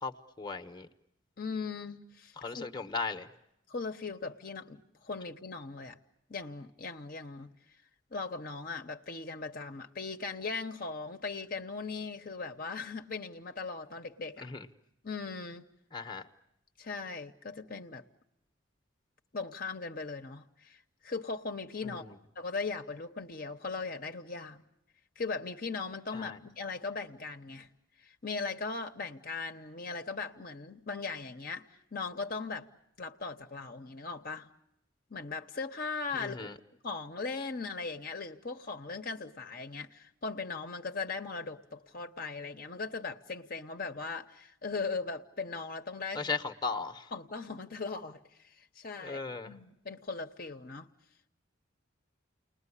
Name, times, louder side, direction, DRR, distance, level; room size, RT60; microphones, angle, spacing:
voice 1, 0.0-0.9 2.4-3.3 14.4-14.7 15.9-16.3 21.8-22.0 26.1-26.4 36.2-36.5 46.1-47.1 49.0-49.5, left 4 dB, 20° left, 1.1 m, -37 dB
voice 2, 1.4-2.8 3.7-6.0 6.3-7.5 8.1-14.5 15.0-15.7 16.8-18.1 19.3-24.6 25.2-27.7 28.0-32.7 33.0-34.5 35.1-36.5 36.8-46.3 47.1-50.9, left 4 dB, 45° left, 1.0 m, -39 dB
29.5 x 20.5 x 9.9 m
head